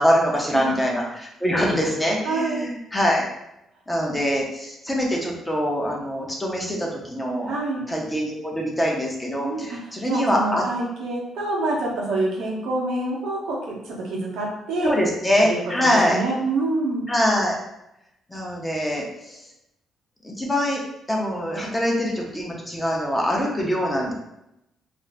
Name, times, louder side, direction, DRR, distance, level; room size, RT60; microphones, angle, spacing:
voice 1, 0.0-3.2 3.9-7.5 7.9-10.6 14.8-16.2 17.1-17.6 18.3-19.4 20.2-20.8 21.1-24.1, equal, 10° left, -2 dB, 0.7 m, -24 dB
voice 2, 2.2-2.6 7.5-7.8 9.4-14.9 15.4-17.0, right 2 dB, 85° right, -3 dB, 0.8 m, -27 dB
2.4 x 2.0 x 3.3 m, 0.84 s
cardioid pair, 90°, 0 cm